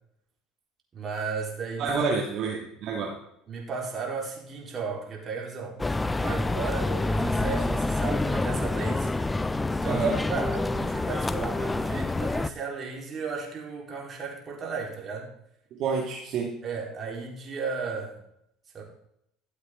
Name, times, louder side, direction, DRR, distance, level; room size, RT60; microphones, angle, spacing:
voice 1, 0.9-2.1 3.5-5.8 6.2-9.1 9.7-15.3 16.6-18.2 18.7-18.8, right 5 dB, 40° right, -1 dB, 4.1 m, -35 dB
voice 2, 1.8-3.1 9.9-10.2 15.8-16.5, right 5 dB, 55° right, -2 dB, 2.2 m, -28 dB
sound 1, 5.8-12.5, left 2 dB, 15° left, 0.5 m, -27 dB
13.5 x 7.9 x 3.8 m, 0.74 s
hypercardioid pair, 80°, 0 cm